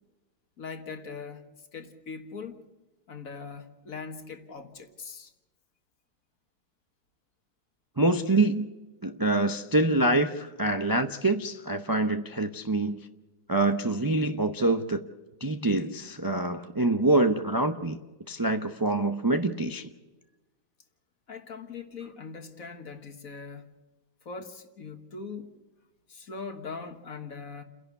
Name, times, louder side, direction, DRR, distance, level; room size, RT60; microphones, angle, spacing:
voice 1, 0.6-2.7 3.1-5.3 21.3-23.7 24.2-25.5 26.1-27.6, left 5 dB, 55° left, 1.8 m, -41 dB
voice 2, 8.0-8.7 9.0-13.0 13.5-15.0 15.4-18.0 18.3-19.9, right 2 dB, 35° right, 0.3 m, -25 dB
29.5 x 11.0 x 8.2 m
omnidirectional pair, 1.8 m